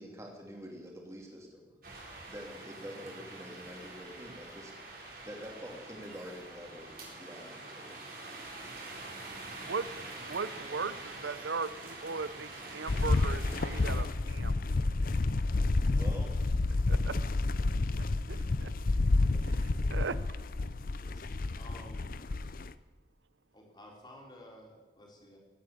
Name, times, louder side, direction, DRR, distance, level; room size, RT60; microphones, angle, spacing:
voice 1, 0.0-1.7 2.3-4.7 5.2-6.9 7.2-8.0 15.9-16.3, equal, 15° right, 0 dB, 2.8 m, -46 dB
sound 1, 1.8-14.0, right 2 dB, 50° right, 3.7 m, -46 dB
voice 2, 10.3-14.7 16.9-17.2 18.3-18.7 19.5-20.2, right 4 dB, 85° right, 16 dB, 0.7 m, -38 dB
sound 2, 12.9-22.7, left 2 dB, 50° left, 0.5 m, -30 dB
voice 3, 21.0-22.1 23.5-25.4, equal, 25° left, -1 dB, 3.5 m, -53 dB
16.5 x 8.8 x 8.7 m, 1.3 s
head